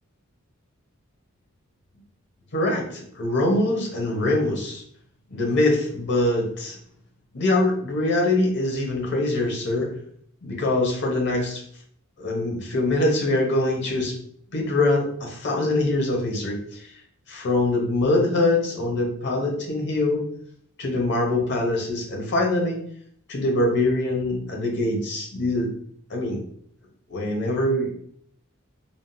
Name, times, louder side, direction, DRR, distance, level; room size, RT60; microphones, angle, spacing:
voice 1, 2.5-4.8 5.3-6.8 7.3-9.9 10.4-11.6 12.2-14.1 14.5-16.9 17.3-20.2 20.8-22.8 23.3-25.7 26.1-26.4 27.1-28.0, left 2 dB, 60° left, 0 dB, 0.9 m, -23 dB
3.6 x 2.5 x 2.2 m, 0.62 s
head